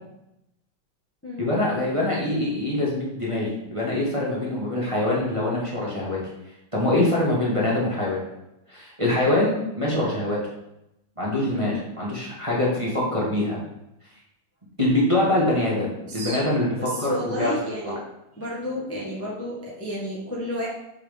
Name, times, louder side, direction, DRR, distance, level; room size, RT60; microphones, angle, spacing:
voice 1, 1.4-6.2 6.7-8.2 8.7-10.4 11.2-13.6 14.8-17.5, left 1 dB, 15° right, -6 dB, 1.7 m, -24 dB
voice 2, 16.0-16.4 16.7-18.0 18.3-20.7, equal, 5° left, -6 dB, 1.5 m, -31 dB
7.5 x 4.5 x 5.2 m, 0.87 s
omnidirectional pair, 2.2 m